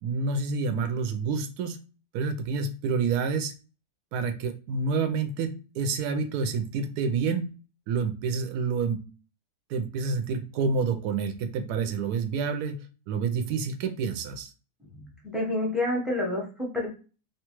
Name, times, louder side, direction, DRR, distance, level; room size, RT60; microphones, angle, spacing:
voice 1, 0.0-1.8 2.1-3.5 4.1-7.5 7.9-9.0 9.7-14.5, right 5 dB, 75° right, 7 dB, 1.1 m, -28 dB
voice 2, 15.0-16.9, left 1 dB, ahead, -2 dB, 0.4 m, -29 dB
3.0 x 2.3 x 2.9 m, 0.34 s
omnidirectional pair, 1.7 m